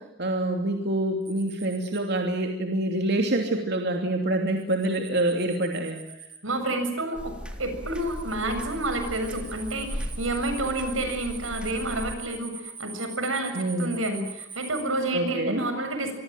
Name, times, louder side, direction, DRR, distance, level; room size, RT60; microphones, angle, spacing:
voice 1, 0.0-6.0 13.5-13.9 15.1-15.6, right 1 dB, 55° right, 3 dB, 2.9 m, -26 dB
sound 1, 1.3-2.0 4.5-6.4 8.0-14.8, right 6 dB, 25° right, 4.7 m, -43 dB
voice 2, 6.4-7.3 7.6-16.1, right 2 dB, 85° right, 7 dB, 7.4 m, -29 dB
sound 2, 7.1-12.1, equal, 5° right, 3.5 m, -37 dB
26.0 x 24.5 x 7.8 m, 0.87 s
head